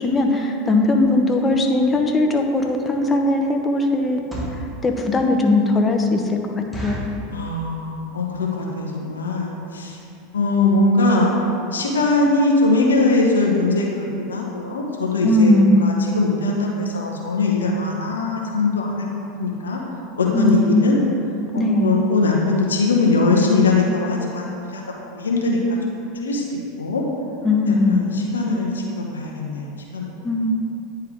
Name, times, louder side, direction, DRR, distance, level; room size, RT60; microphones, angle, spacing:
voice 1, 0.0-4.2 4.5-7.0 15.2-16.0 20.3-20.9 21.5-22.0 27.4-28.1 30.2-30.6, left 2 dB, 20° left, 3 dB, 0.8 m, -19 dB
sound 1, 4.1-4.7 5.3-5.4 5.7-5.8 6.1-6.2 6.7-7.2 7.8-8.1 8.4-8.5 8.7-9.0 9.5-9.6 9.8-10.0 10.4-10.5 10.7-10.8, equal, ahead, 1.3 m, -32 dB
voice 2, 7.3-10.0 10.3-11.3 11.7-19.1 19.4-19.8 20.2-21.0 21.5-25.6 26.1-27.0 27.7-30.1, left 3 dB, 80° left, -1 dB, 0.7 m, -21 dB
9.7 x 3.4 x 3.5 m, 2.6 s
figure-of-eight pair, 85°, 0 cm